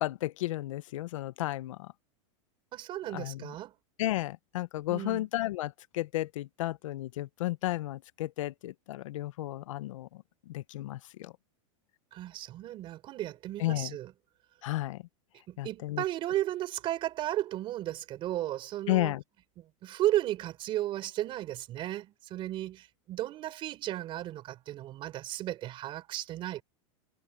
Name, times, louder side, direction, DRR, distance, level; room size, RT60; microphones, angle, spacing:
voice 1, 0.0-1.9 3.1-3.5 4.0-10.1 10.5-11.3 13.6-13.9 14.6-15.0 15.6-16.0 18.9-19.2, left 16 dB, 85° left, 0.7 m, -33 dB
voice 2, 2.7-3.7 4.9-5.3 12.1-14.1 15.5-19.1 19.6-26.6, right 14 dB, 30° right, 4.0 m, -34 dB
supercardioid pair, 155°, 16 cm